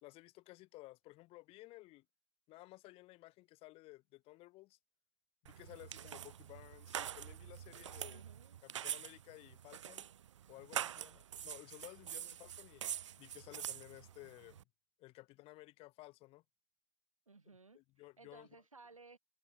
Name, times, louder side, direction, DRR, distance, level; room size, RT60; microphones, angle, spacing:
voice 1, 0.0-2.0 2.5-4.8 5.4-8.2 8.6-10.1 10.5-12.8 13.2-14.6 15.0-16.4 17.7-18.5, left 20 dB, 35° left, 2.4 m, -56 dB
sound 1, 5.5-14.6, right 10 dB, 60° right, 1.0 m, -45 dB
voice 2, 8.1-8.6 12.0-12.3 17.3-19.2, right 4 dB, 80° right, 3.1 m, -60 dB
figure-of-eight pair, 100°, 17 cm